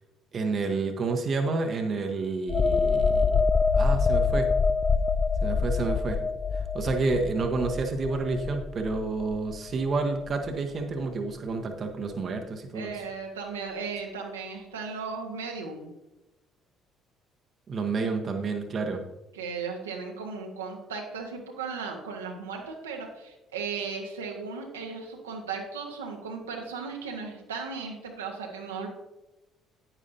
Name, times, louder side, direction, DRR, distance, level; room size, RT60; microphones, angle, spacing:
voice 1, 0.3-3.5 3.7-4.5 5.4-6.2 6.7-13.0 17.7-19.0, right 3 dB, 40° right, 4 dB, 1.0 m, -29 dB
sound 1, 2.5-9.9 10.3-10.5, left 4 dB, 35° left, 0.4 m, -25 dB
voice 2, 12.7-15.9 19.3-28.9, right 5 dB, 75° right, 1 dB, 1.2 m, -36 dB
10.0 x 9.7 x 2.7 m, 0.99 s
figure-of-eight pair, 50°, 0 cm